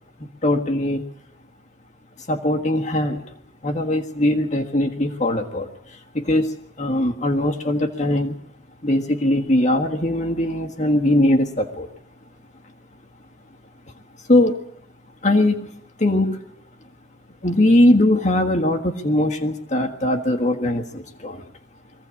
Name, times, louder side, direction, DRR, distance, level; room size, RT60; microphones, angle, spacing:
voice 1, 0.4-1.0 2.3-3.3 3.6-8.3 8.8-11.9 14.3-14.6 15.2-16.4 17.4-21.4, left 1 dB, 40° left, 3 dB, 1.6 m, -20 dB
22.5 x 16.0 x 8.5 m, 0.74 s
head